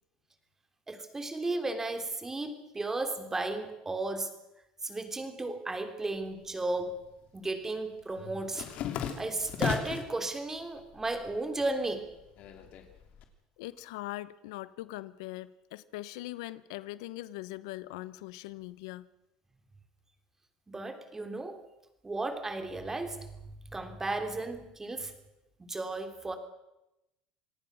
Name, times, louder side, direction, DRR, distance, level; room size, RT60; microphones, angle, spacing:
voice 1, 0.9-4.4 4.8-7.0 7.3-8.7 9.2-12.1 20.7-21.6 22.0-23.3 23.7-25.1 25.6-26.4, right 2 dB, 15° right, 7 dB, 3.5 m, -34 dB
sound 1, 6.3-7.1 7.4-10.2 10.6-11.3 11.6-13.2, left 8 dB, 60° left, 3.3 m, -36 dB
voice 2, 13.6-19.1, left 17 dB, 90° left, 17 dB, 0.8 m, -41 dB
27.0 x 18.5 x 6.4 m, 0.93 s
supercardioid pair, 100°, 3 cm